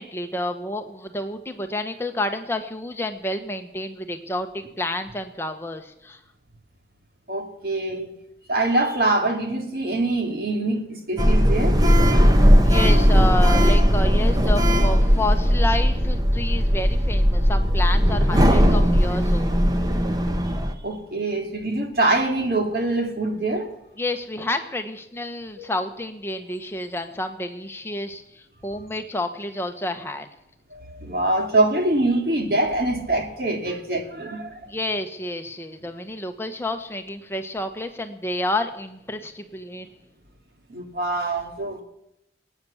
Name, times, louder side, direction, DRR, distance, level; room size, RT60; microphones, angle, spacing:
voice 1, 0.0-6.2 12.6-19.6 24.0-30.3 34.7-39.9, left 1 dB, 15° left, 6 dB, 1.1 m, -29 dB
voice 2, 7.3-8.1 8.5-11.8 20.8-23.7 25.6-25.7 30.7-34.7 40.7-41.8, right 2 dB, 55° right, 4 dB, 2.6 m, -24 dB
Sliding door, 11.2-20.7, equal, 20° right, 1.1 m, -18 dB
21.0 x 9.5 x 7.2 m, 0.82 s
head